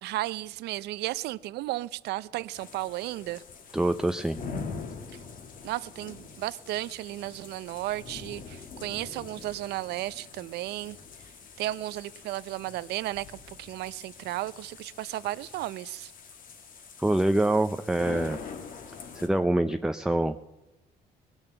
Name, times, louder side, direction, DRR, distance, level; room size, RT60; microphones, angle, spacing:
voice 1, 0.0-3.4 5.6-11.0 11.6-16.1, right 16 dB, 80° right, 0.5 m, -34 dB
sound 1, 2.5-19.3, left 5 dB, 55° left, 1.7 m, -44 dB
voice 2, 3.7-4.4 17.0-18.4 19.1-20.4, right 1 dB, 5° right, 0.5 m, -25 dB
20.0 x 7.1 x 6.7 m
cardioid pair, 110°, 17 cm